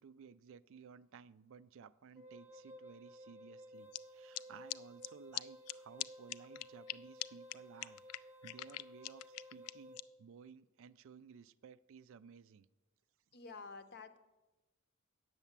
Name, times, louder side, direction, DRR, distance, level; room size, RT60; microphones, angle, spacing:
voice 1, 0.0-12.7, right 6 dB, 60° right, 0.3 m, -57 dB
Wind instrument woodwind instrument, 2.2-10.0, equal, 10° right, 0.8 m, -55 dB
sound 1, 3.9-4.0 4.3-4.4 4.7-4.8 5.0-5.1 5.3-5.4 5.7-5.8 6.0-6.1 6.3-6.9 7.2-7.3 7.5-7.6 7.8-10.0, left 16 dB, 70° left, 0.3 m, -41 dB
voice 2, 13.3-14.2, left 4 dB, 45° left, 0.7 m, -50 dB
9.0 x 6.9 x 7.2 m
head